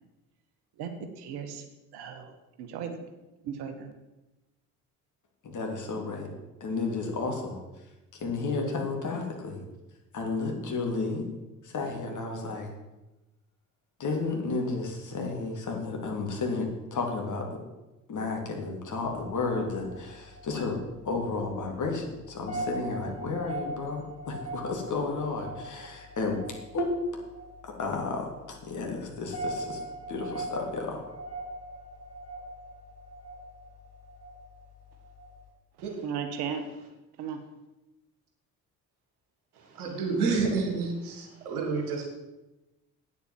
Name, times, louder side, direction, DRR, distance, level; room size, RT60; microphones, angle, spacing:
voice 1, 1.2-1.6 1.9-2.3 2.6-3.0 3.4-3.9 36.0-36.6 37.2-37.4, right 7 dB, 60° right, 7 dB, 1.5 m, -35 dB
voice 2, 5.4-6.3 6.6-7.6 8.1-9.7 10.1-11.3 11.6-12.7 14.0-17.6 18.1-26.4 26.7-26.9 27.6-29.8 30.1-31.0, left 3 dB, 40° left, 1 dB, 2.9 m, -32 dB
sound 1, 19.0-35.5, right 1 dB, 75° left, 4.3 m, -41 dB
voice 3, 39.6-42.1, right 4 dB, 75° right, 2 dB, 2.1 m, -29 dB
8.8 x 8.1 x 7.7 m, 1.0 s
figure-of-eight pair, 45°, 44 cm